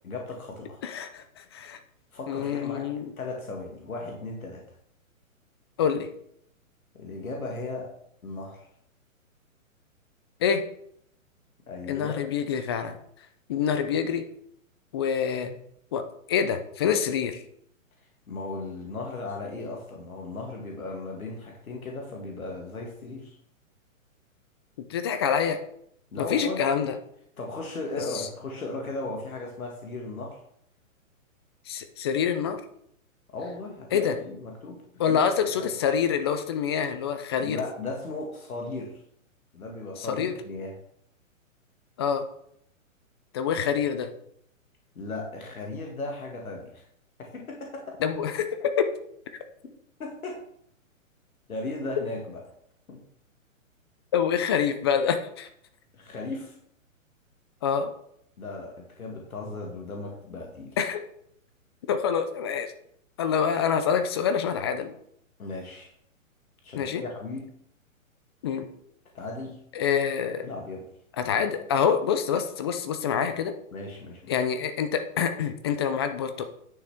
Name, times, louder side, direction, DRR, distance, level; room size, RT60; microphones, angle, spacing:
voice 1, 0.0-0.8 2.1-2.9 3.2-4.6 6.9-7.9 8.2-8.7 11.7-12.2 18.3-23.4 26.1-26.6 27.4-30.4 33.3-34.8 35.1-35.2 35.6-35.7 37.4-39.0 39.5-40.8 45.0-46.8 47.2-48.0 50.0-50.4 51.5-52.4 52.9-53.0 55.9-56.6 58.4-60.8 65.4-65.9 66.6-67.5 69.1-69.6 70.4-70.8 73.7-74.3, left 2 dB, 85° left, 0 dB, 1.9 m, -36 dB
voice 2, 0.8-1.8 2.3-3.1 5.8-6.1 10.4-10.6 11.9-13.0 13.5-14.3 14.9-15.6 15.9-16.0 16.3-17.4 24.9-25.6 26.2-27.0 28.1-28.2 31.7-32.6 33.9-34.2 35.0-37.6 40.0-40.3 42.0-42.2 43.3-44.1 48.0-48.9 54.1-55.5 57.6-57.9 60.8-61.0 61.9-62.7 63.2-64.9 66.7-67.0 68.4-68.7 69.8-70.5 71.2-73.5 74.3-76.4, left 7 dB, 20° left, 9 dB, 0.4 m, -26 dB
9.7 x 6.5 x 3.5 m, 0.71 s
hypercardioid pair, 135°, 41 cm